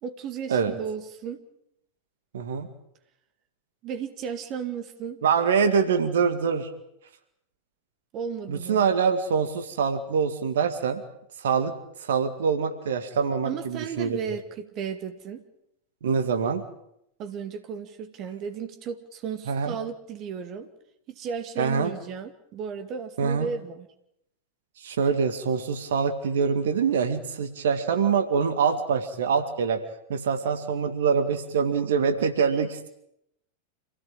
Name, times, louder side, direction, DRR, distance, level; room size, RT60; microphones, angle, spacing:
voice 1, 0.0-1.4 3.8-5.2 8.1-8.8 13.4-15.4 17.2-20.7 21.1-23.9, right 7 dB, 35° right, 8 dB, 2.3 m, -34 dB
voice 2, 2.3-2.7 5.2-6.7 8.5-11.0 11.4-11.7 12.0-14.2 16.0-16.6 19.5-19.8 21.6-21.9 23.2-23.5 24.8-29.8 30.1-32.9, right 6 dB, 60° right, 9 dB, 2.2 m, -24 dB
27.5 x 17.0 x 9.0 m, 0.77 s
figure-of-eight pair, 90°, 0 cm